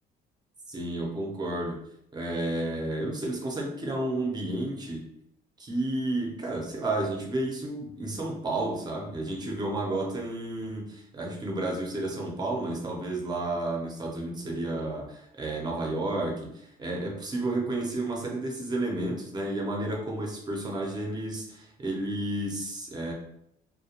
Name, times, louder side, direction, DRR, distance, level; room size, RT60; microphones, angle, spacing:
voice 1, 0.7-1.8 2.1-5.1 5.6-23.1, right 2 dB, 25° right, -1 dB, 0.7 m, -31 dB
2.3 x 2.2 x 2.9 m, 0.75 s
cardioid pair, 110°, 17 cm